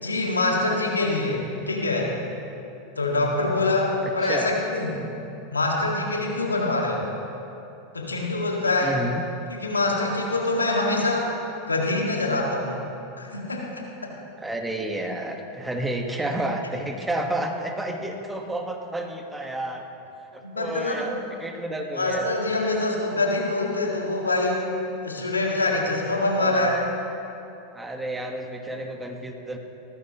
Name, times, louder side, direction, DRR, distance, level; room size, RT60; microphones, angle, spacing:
voice 1, 0.0-2.1 3.0-5.0 5.5-7.1 7.9-9.0 9.5-11.3 11.7-12.8 13.2-14.1 20.4-21.1 22.0-24.7 25.0-26.8, left 2 dB, 90° left, 0 dB, 1.8 m, -25 dB
voice 2, 4.0-4.5 8.8-9.2 14.4-19.8 20.3-21.1 21.4-22.3 26.4-26.7 27.7-29.6, right 1 dB, 10° right, 3 dB, 1.4 m, -30 dB
18.0 x 14.0 x 3.0 m, 2.8 s
figure-of-eight pair, 90°, 0 cm